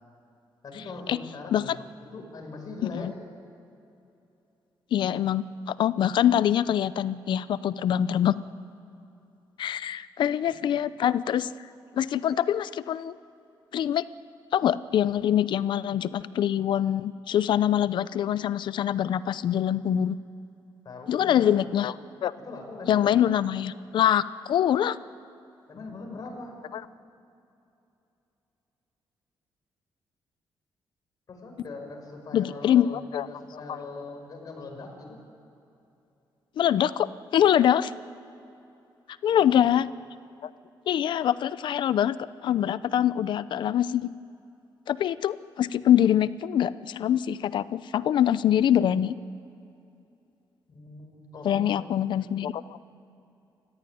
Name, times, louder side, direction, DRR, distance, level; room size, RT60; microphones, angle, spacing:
voice 1, 0.6-1.8 2.1-3.1 10.6-10.7 20.8-21.8 22.4-23.5 25.7-26.6 31.3-35.2 39.3-39.5 50.7-52.3, left 3 dB, 50° left, 2 dB, 5.3 m, -41 dB
voice 2, 4.9-8.4 9.6-11.5 11.9-13.2 13.7-14.0 14.5-20.2 21.1-21.9 22.2-22.3 22.9-25.0 32.3-33.3 36.6-37.9 39.2-39.9 40.4-40.5 40.9-42.2 42.4-44.1 44.9-49.1 51.4-52.8, left 10 dB, 70° left, 16 dB, 0.6 m, -24 dB
28.5 x 15.0 x 9.3 m, 2.8 s
cardioid pair, 125°, 8 cm